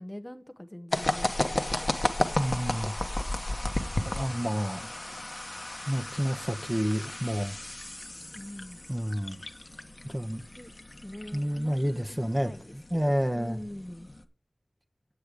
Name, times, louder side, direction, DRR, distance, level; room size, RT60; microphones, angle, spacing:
voice 1, 0.0-2.0 8.3-8.8 10.6-10.7 11.0-12.0 12.4-14.1, left 1 dB, 15° left, 0.9 m, -44 dB
sound 1, 0.9-14.2, left 1 dB, 40° left, 1.2 m, -34 dB
voice 2, 2.4-2.9 4.0-4.9 5.9-7.6 8.9-9.4 10.0-10.4 11.3-13.6, equal, 10° right, 1.1 m, -29 dB
8.5 x 7.7 x 5.0 m
wide cardioid pair, 45°, 0 cm